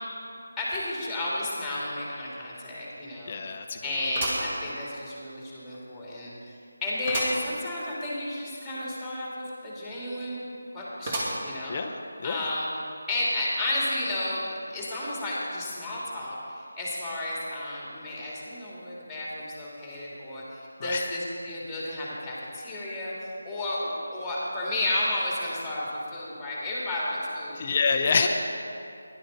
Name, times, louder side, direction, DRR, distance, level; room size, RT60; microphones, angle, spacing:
voice 1, 0.6-3.4 3.8-6.3 6.8-10.4 10.7-11.8 12.2-12.7 13.1-14.4 14.7-23.1 23.4-27.8 28.1-28.3, left 1 dB, ahead, -6 dB, 2.2 m, -32 dB
sound 1, 1.9-2.0 2.4-2.5 4.1-5.2 5.7-5.8 7.1-7.5 7.9-8.0 8.2-8.3 11.1-11.7 12.3-12.4 13.3-13.4, right 1 dB, 25° right, 2.0 m, -32 dB
voice 2, 3.3-3.8 11.7-11.9 12.2-12.4 20.8-21.1 27.6-28.3, left 5 dB, 30° left, 5 dB, 0.6 m, -26 dB
16.0 x 11.0 x 4.0 m, 2.6 s
figure-of-eight pair, 170°, 0 cm